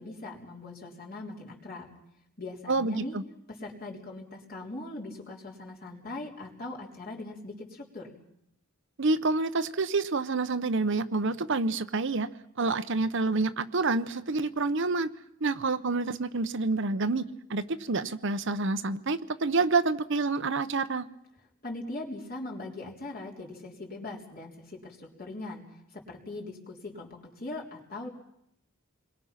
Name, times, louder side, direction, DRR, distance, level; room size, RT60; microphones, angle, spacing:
voice 1, 0.0-1.9 2.4-3.2 3.5-8.1 21.6-25.7 25.9-28.1, left 2 dB, 45° left, -1 dB, 3.9 m, -40 dB
voice 2, 2.7-3.2 9.0-12.3 12.6-15.1 15.4-21.1, right 3 dB, 60° right, 11 dB, 0.9 m, -28 dB
28.5 x 22.0 x 5.9 m, 0.79 s
head